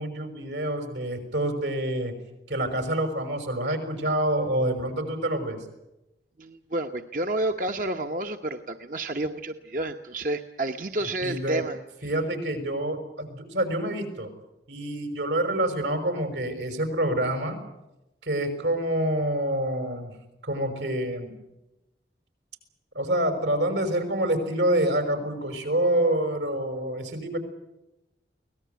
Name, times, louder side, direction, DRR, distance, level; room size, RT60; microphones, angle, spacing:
voice 1, 0.0-2.1 2.5-5.6 11.2-11.6 12.0-14.3 14.7-17.6 18.2-20.1 20.4-21.3 22.9-27.4, right 1 dB, 85° right, 7 dB, 6.0 m, -27 dB
voice 2, 6.4-12.1, right 2 dB, 50° right, 6 dB, 1.0 m, -30 dB
24.0 x 18.5 x 9.3 m, 0.93 s
head